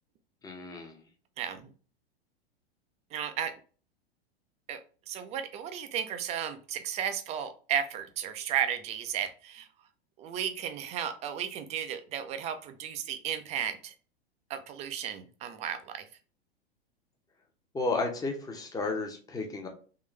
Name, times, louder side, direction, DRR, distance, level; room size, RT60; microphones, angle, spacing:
voice 1, 0.4-1.0 17.7-19.7, left 3 dB, 10° left, 3 dB, 0.8 m, -33 dB
voice 2, 1.4-1.7 3.1-3.5 4.7-4.8 5.1-9.7 10.2-13.9 14.5-16.1, right 9 dB, 20° right, 8 dB, 0.4 m, -34 dB
3.7 x 3.1 x 3.1 m, 0.39 s
figure-of-eight pair, 90°, 31 cm